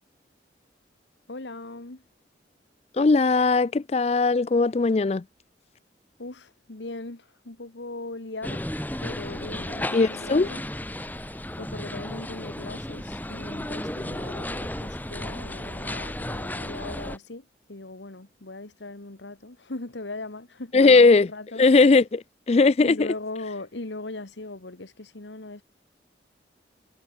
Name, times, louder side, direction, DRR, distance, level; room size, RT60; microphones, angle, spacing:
voice 1, 1.3-2.0 6.2-8.6 9.0-10.6 11.2-21.6 22.8-25.6, left 2 dB, 85° left, 1.7 m, -39 dB
voice 2, 2.9-5.2 9.9-10.5 20.7-21.3 21.6-23.1, left 3 dB, 35° left, 0.4 m, -19 dB
sound 1, 8.4-17.2, left 1 dB, 10° left, 3.3 m, -34 dB
head